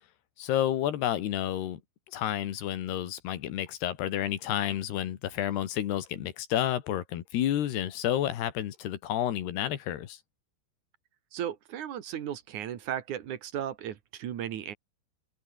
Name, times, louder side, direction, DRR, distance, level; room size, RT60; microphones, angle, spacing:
voice 1, 0.4-1.8 2.1-10.2, left 11 dB, 85° left, 3.9 m, -30 dB
voice 2, 11.3-14.7, right 10 dB, 55° right, 2.7 m, -35 dB
omnidirectional pair, 4.6 m